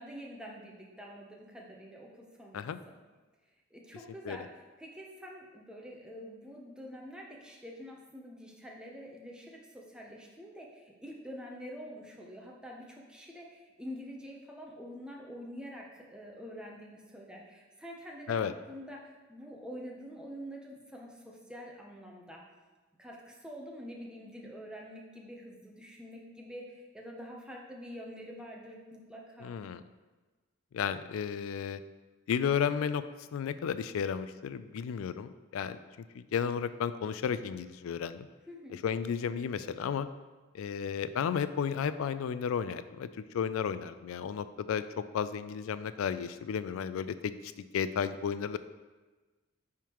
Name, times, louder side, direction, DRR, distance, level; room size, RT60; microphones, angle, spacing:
voice 1, 0.0-2.9 3.7-4.5 4.8-22.4 23.0-29.5 38.5-38.8, equal, 5° right, -1 dB, 0.8 m, -46 dB
voice 2, 29.4-29.8 30.7-31.8 32.3-35.8 36.1-38.3 38.7-40.1 40.5-43.1 43.3-48.6, left 7 dB, 80° left, 13 dB, 0.3 m, -33 dB
9.2 x 3.6 x 3.0 m, 1.3 s
head